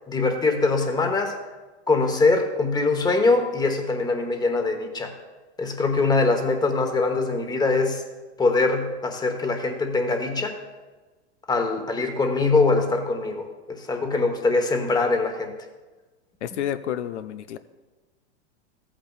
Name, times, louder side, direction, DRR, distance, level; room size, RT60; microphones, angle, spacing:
voice 1, 0.1-1.4 1.9-5.1 5.6-8.0 8.4-10.6 11.5-15.5, left 3 dB, 10° left, 5 dB, 1.1 m, -23 dB
voice 2, 16.4-17.6, left 10 dB, 80° left, 11 dB, 0.6 m, -30 dB
14.5 x 8.7 x 2.4 m, 1.2 s
hypercardioid pair, 120°, 34 cm